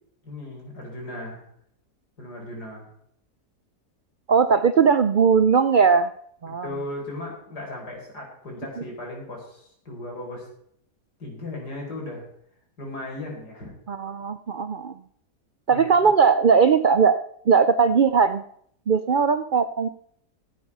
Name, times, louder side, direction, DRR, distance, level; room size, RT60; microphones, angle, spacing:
voice 1, 0.2-1.4 2.2-2.9 6.5-10.5 11.2-12.2 12.8-13.7 15.7-16.1, left 2 dB, 80° left, 0 dB, 5.1 m, -36 dB
voice 2, 4.3-6.1 6.4-6.7 13.9-14.9 15.7-17.2 17.5-18.4 18.9-19.9, right 6 dB, 80° right, 10 dB, 0.4 m, -19 dB
15.5 x 8.5 x 5.5 m, 0.67 s
omnidirectional pair, 1.7 m